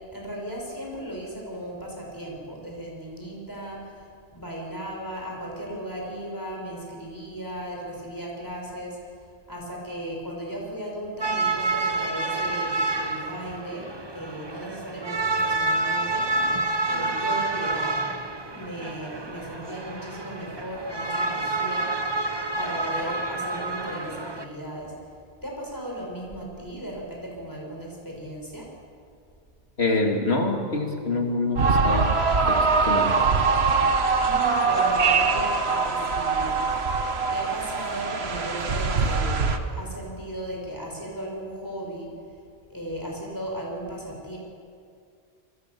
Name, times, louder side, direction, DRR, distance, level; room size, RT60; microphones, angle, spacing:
voice 1, 0.1-3.8 4.3-9.0 9.5-16.3 16.9-18.1 18.5-21.9 22.6-24.9 25.4-28.7 34.2-36.5 37.3-42.1 42.7-44.4, right 1 dB, 20° left, -1 dB, 6.4 m, -36 dB
sound 1, 11.2-24.4, right 2 dB, 25° right, 1.3 m, -28 dB
voice 2, 29.8-32.1 32.5-33.2, left 2 dB, 85° left, 2 dB, 3.1 m, -26 dB
sound 2, 31.6-39.6, right 4 dB, 80° right, 1.6 m, -23 dB
28.0 x 23.0 x 7.1 m, 2.3 s
omnidirectional pair, 1.0 m